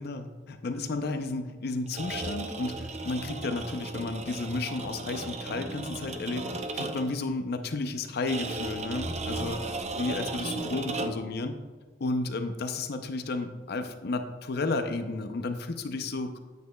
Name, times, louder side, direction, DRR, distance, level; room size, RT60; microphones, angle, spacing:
voice 1, 0.0-6.5 6.7-9.6 10.0-11.5 12.0-16.4, left 3 dB, 60° left, 7 dB, 0.5 m, -32 dB
sound 1, 1.9-7.2 8.3-11.3, right 2 dB, 35° right, 0.6 m, -35 dB
9.4 x 8.4 x 2.2 m, 1.4 s
head